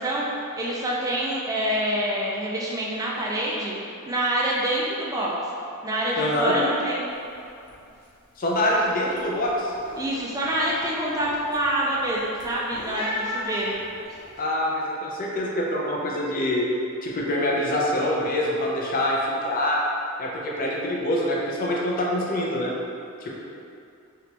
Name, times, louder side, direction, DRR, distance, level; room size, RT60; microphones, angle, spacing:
voice 1, 0.0-3.7 4.0-5.3 5.8-7.1 10.0-13.8, right 1 dB, 15° right, -5 dB, 0.3 m, -26 dB
voice 2, 6.2-6.6 8.4-9.7 14.4-16.7 17.0-19.8 20.2-22.7 23.2-23.3, left 1 dB, 40° left, -3 dB, 0.5 m, -25 dB
sound 1, 7.1-7.3 7.6-8.1 8.4-14.4, left 1 dB, 85° left, 1.0 m, -37 dB
3.3 x 2.9 x 2.9 m, 2.5 s
head